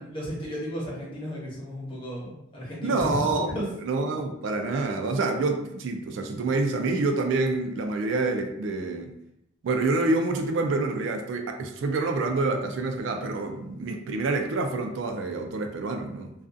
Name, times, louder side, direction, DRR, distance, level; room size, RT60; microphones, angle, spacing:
voice 1, 0.0-3.7, equal, 25° left, -4 dB, 0.8 m, -34 dB
voice 2, 2.8-9.1 9.6-16.3, right 3 dB, 70° right, 4 dB, 0.3 m, -27 dB
2.4 x 2.3 x 2.4 m, 0.80 s
head